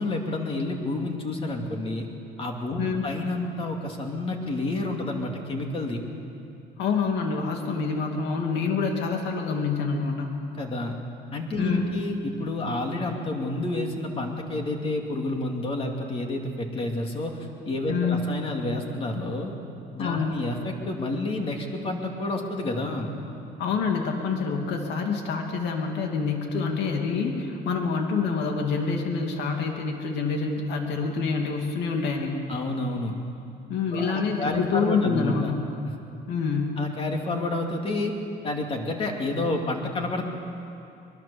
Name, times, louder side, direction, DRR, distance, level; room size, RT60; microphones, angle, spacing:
voice 1, 0.0-2.1 2.4-6.0 10.6-11.0 11.3-17.4 17.6-19.5 19.9-23.1 32.5-33.1 33.9-35.5 36.8-38.1 38.4-40.3, left 2 dB, 30° left, 2 dB, 2.5 m, -29 dB
voice 2, 2.8-3.1 6.8-10.4 11.6-11.9 17.9-18.2 20.0-20.4 23.6-32.4 33.7-35.7 36.3-36.8, left 5 dB, 70° left, 2 dB, 2.7 m, -27 dB
23.5 x 22.0 x 7.1 m, 2.7 s
cardioid pair, 165°, 18 cm